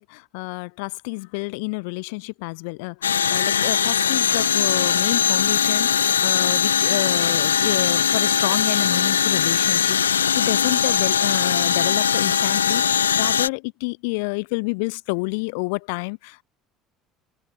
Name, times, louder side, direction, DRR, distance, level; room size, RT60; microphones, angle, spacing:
voice 1, 0.0-16.4, left 31 dB, 60° left, 6.4 m, -29 dB
sound 1, 3.0-13.5, left 8 dB, 80° left, 0.5 m, -20 dB
open air
figure-of-eight pair, 60°, 0 cm